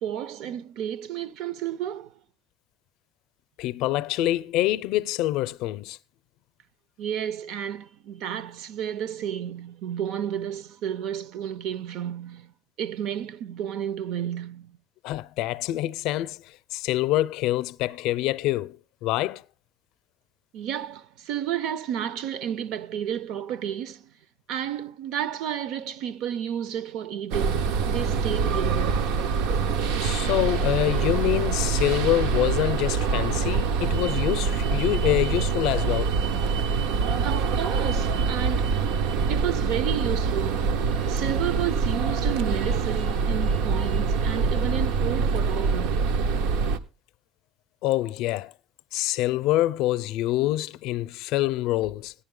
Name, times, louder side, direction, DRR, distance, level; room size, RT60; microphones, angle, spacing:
voice 1, 0.0-2.1 7.0-12.5 12.8-14.8 20.5-24.1 24.5-29.1 37.2-38.7 39.3-40.7 41.1-46.2, right 10 dB, 60° right, 0.6 m, -31 dB
voice 2, 3.6-6.0 15.0-16.4 16.7-19.4 30.0-36.1 47.8-48.5 48.9-52.1, left 15 dB, 65° left, 0.5 m, -26 dB
sound 1, 27.3-46.8, right 5 dB, 85° right, 0.9 m, -25 dB
14.5 x 10.0 x 3.8 m
cardioid pair, 165°, 0 cm